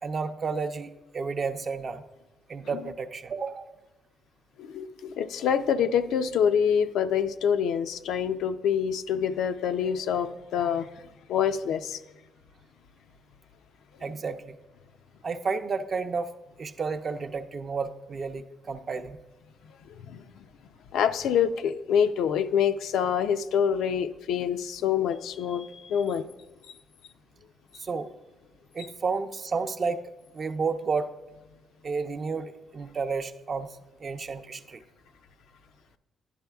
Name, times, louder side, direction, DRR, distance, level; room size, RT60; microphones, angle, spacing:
voice 1, 0.0-2.0 2.5-3.7 10.6-10.7 14.0-14.6 15.2-16.3 16.6-19.2 27.8-28.1 28.7-30.0 30.3-31.1 31.8-34.8, right 4 dB, 40° right, 8 dB, 0.5 m, -31 dB
voice 2, 4.6-10.9 11.3-12.0 20.1-20.2 20.9-26.3, left 8 dB, 80° left, 9 dB, 0.4 m, -26 dB
11.5 x 11.0 x 2.3 m, 1.1 s
cardioid pair, 90°, 0 cm